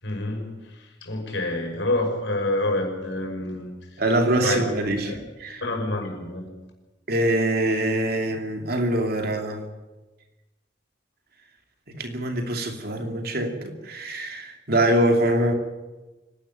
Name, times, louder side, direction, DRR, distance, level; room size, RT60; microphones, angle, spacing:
voice 1, 0.0-4.0 4.4-5.2 5.6-6.5, left 2 dB, 70° left, 6.0 m, -28 dB
voice 2, 4.0-5.6 7.1-9.6 11.9-15.5, right 1 dB, 55° right, 2.7 m, -24 dB
25.5 x 12.0 x 9.2 m
head